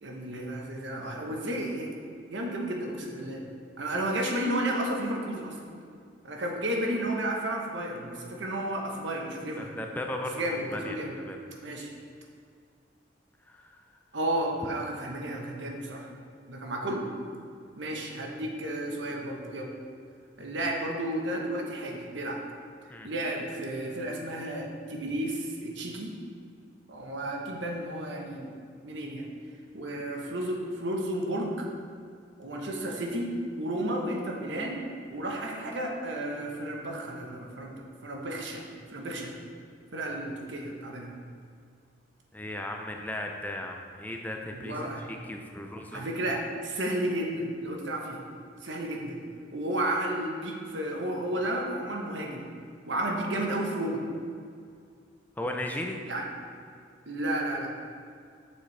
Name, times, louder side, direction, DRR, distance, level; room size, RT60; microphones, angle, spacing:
voice 1, 0.0-2.0 2.3-3.4 3.8-5.6 6.2-9.7 10.3-11.1 11.6-11.9 14.1-16.1 16.5-17.1 17.8-19.7 20.4-22.4 23.0-26.1 26.9-28.5 28.8-29.3 29.7-31.7 32.4-33.3 33.6-34.8 35.1-37.7 38.0-38.6 38.9-39.3 39.9-41.1 44.5-45.0 45.9-48.2 48.6-49.2 49.5-52.4 52.9-54.0 56.0-56.2 57.1-57.7, right 1 dB, 70° right, 0 dB, 1.1 m, -32 dB
voice 2, 9.6-10.4 10.7-11.4 13.5-13.8 22.9-23.1 42.3-46.0 55.4-56.0, left 1 dB, 10° left, 3 dB, 0.4 m, -36 dB
7.4 x 6.5 x 3.3 m, 2.3 s
head